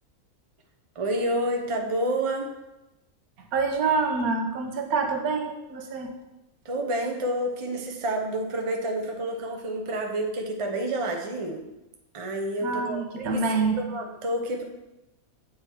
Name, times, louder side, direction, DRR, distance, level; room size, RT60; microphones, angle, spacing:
voice 1, 1.0-2.5 6.6-11.6 12.1-14.6, right 1 dB, 30° right, 2 dB, 0.6 m, -29 dB
voice 2, 3.5-6.1 12.6-13.8, right 4 dB, 80° right, 4 dB, 1.3 m, -26 dB
8.0 x 3.6 x 4.5 m, 0.97 s
omnidirectional pair, 1.5 m